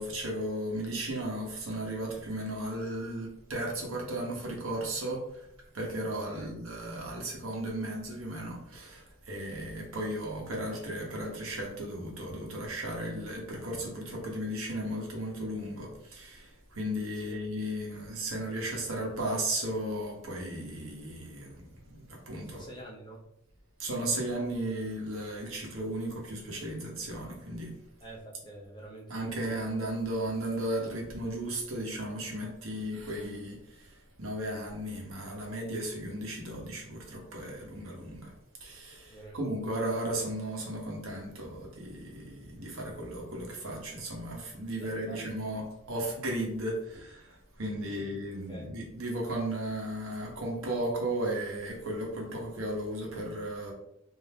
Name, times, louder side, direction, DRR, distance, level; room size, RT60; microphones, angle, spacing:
voice 1, 0.0-5.4 5.7-22.7 23.8-27.8 29.1-38.3 38.6-53.7, right 1 dB, 75° right, -1 dB, 1.0 m, -35 dB
voice 2, 22.5-23.2 28.0-29.6 39.1-39.6 44.7-45.4 47.8-48.1 48.5-48.7, right 2 dB, 20° left, -3 dB, 0.8 m, -46 dB
3.4 x 2.6 x 3.3 m, 0.77 s
head